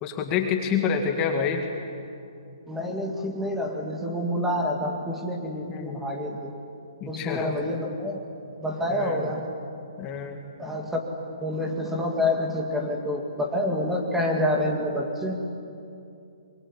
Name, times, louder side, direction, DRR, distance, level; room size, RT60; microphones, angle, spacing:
voice 1, 0.0-1.7 5.7-6.0 7.0-7.5 8.9-9.3 10.0-10.5, left 6 dB, 20° left, 3 dB, 2.0 m, -27 dB
voice 2, 2.7-6.6 7.1-8.2 8.6-9.5 10.6-11.0 11.4-15.4, left 1 dB, 5° right, 1 dB, 2.0 m, -28 dB
25.0 x 22.5 x 9.8 m, 2.6 s
hypercardioid pair, 160°, 3 cm